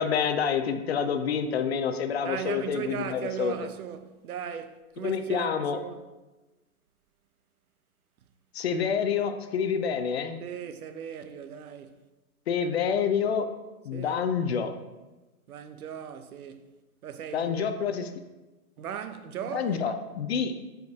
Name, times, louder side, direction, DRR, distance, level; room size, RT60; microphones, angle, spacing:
voice 1, 0.0-3.5 5.0-5.8 8.5-10.4 12.5-13.5 13.8-14.7 17.3-18.1 19.5-20.5, left 7 dB, 45° left, 0.5 m, -27 dB
voice 2, 2.2-6.0 10.4-12.0 13.9-14.2 15.5-16.7 17.0-17.7 18.8-19.9, right 8 dB, 75° right, 0.7 m, -37 dB
5.2 x 4.8 x 4.6 m
hypercardioid pair, 160°, 44 cm